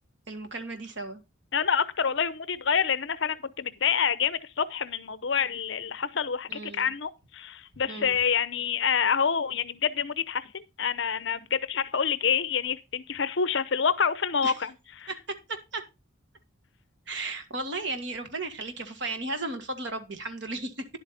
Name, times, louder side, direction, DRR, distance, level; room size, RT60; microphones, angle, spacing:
voice 1, 0.3-1.2 6.5-6.9 7.9-8.2 14.4-14.6 15.1-15.8 17.1-20.9, right 2 dB, 60° right, 1.8 m, -35 dB
voice 2, 1.5-14.7 15.0-15.1, left 7 dB, 60° left, 0.7 m, -27 dB
10.5 x 7.9 x 4.1 m
head